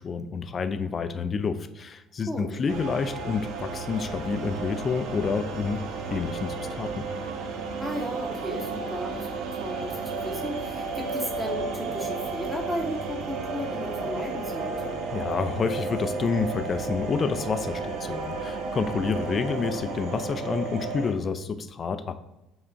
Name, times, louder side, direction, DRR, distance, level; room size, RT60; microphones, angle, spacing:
voice 1, 0.0-5.8 6.1-7.0 15.1-22.2, left 5 dB, 40° left, 9 dB, 0.3 m, -29 dB
sound 1, 2.7-21.1, right 4 dB, 60° right, 0.5 m, -33 dB
voice 2, 7.8-15.0, equal, 5° right, 1 dB, 0.9 m, -34 dB
5.8 x 2.3 x 3.3 m, 0.98 s
figure-of-eight pair, 55°, 0 cm